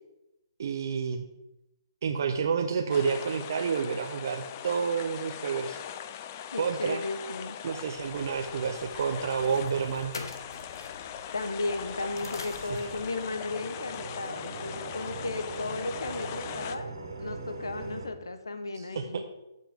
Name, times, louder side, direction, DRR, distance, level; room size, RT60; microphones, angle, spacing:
voice 1, 0.6-1.2 2.0-5.8 6.6-7.0 7.6-10.1 12.7-12.8 18.7-19.2, right 6 dB, 55° right, 4 dB, 0.7 m, -29 dB
sound 1, 2.9-16.8, left 9 dB, 35° left, 0.5 m, -41 dB
voice 2, 6.5-7.6 11.3-19.2, left 2 dB, 85° left, 9 dB, 1.0 m, -35 dB
sound 2, 7.9-13.2, left 3 dB, 70° left, 1.3 m, -45 dB
sound 3, 11.6-18.1, right 3 dB, 80° right, 2.1 m, -41 dB
14.0 x 5.4 x 3.6 m, 0.93 s
hypercardioid pair, 140°, 2 cm